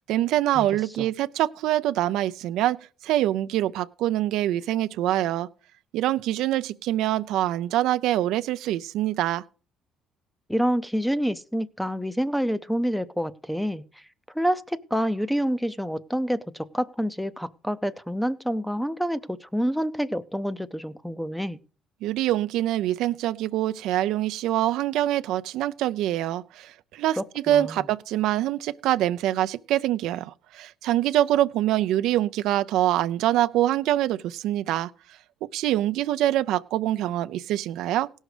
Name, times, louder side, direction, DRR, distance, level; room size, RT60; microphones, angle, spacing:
voice 1, 0.0-2.8 3.0-5.5 5.9-9.4 22.0-34.9 35.4-38.1, right 13 dB, 80° right, 0.4 m, -25 dB
voice 2, 10.5-13.8 14.3-21.6 27.2-27.8, equal, ahead, 0.6 m, -27 dB
17.0 x 6.4 x 4.9 m
cardioid pair, 110°, 0 cm